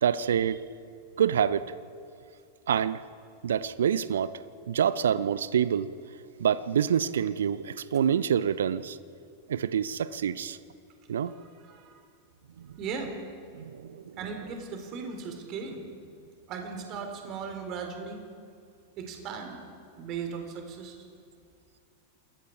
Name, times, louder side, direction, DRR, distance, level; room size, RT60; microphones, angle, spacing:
voice 1, 0.0-0.6 1.2-1.6 2.7-3.0 3.4-4.3 4.7-5.9 6.4-9.0 9.5-10.6 11.1-11.3 12.6-12.7 13.5-14.2, right 8 dB, 65° right, 16 dB, 0.7 m, -26 dB
voice 2, 11.2-11.9 12.8-13.2 14.2-15.9 16.5-18.2 19.0-19.6 20.0-21.0, right 5 dB, 35° right, 4 dB, 3.9 m, -37 dB
28.0 x 21.0 x 4.8 m, 2.4 s
figure-of-eight pair, 90°, 0 cm